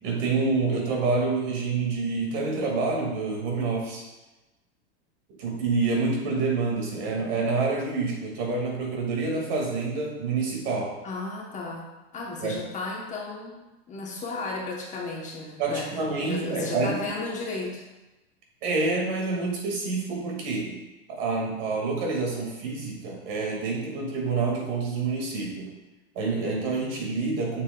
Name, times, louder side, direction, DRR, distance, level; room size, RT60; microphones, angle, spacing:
voice 1, 0.0-4.1 5.4-11.0 12.4-12.6 15.6-17.0 18.6-20.8 21.1-25.7 26.1-27.6, right 3 dB, 55° right, -1 dB, 2.1 m, -27 dB
voice 2, 11.0-11.9 12.1-13.6 13.9-17.8, left 3 dB, 25° left, -1 dB, 1.0 m, -34 dB
7.1 x 6.8 x 2.3 m, 1.1 s
supercardioid pair, 140°, 32 cm